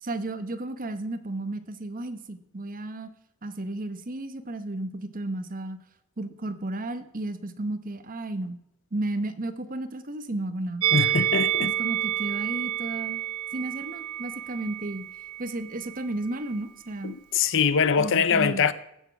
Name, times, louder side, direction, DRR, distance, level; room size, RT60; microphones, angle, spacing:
voice 1, 0.0-3.1 3.4-5.8 6.2-8.6 8.9-10.9 11.6-13.2 13.5-15.1 15.4-17.1 18.0-18.7, right 2 dB, 40° right, 0.9 m, -33 dB
Musical instrument, 10.8-16.0 16.3-16.5, right 12 dB, 75° right, 0.8 m, -29 dB
voice 2, 10.9-11.7 17.0-18.7, left 6 dB, 55° left, 0.6 m, -23 dB
15.5 x 6.2 x 5.8 m
head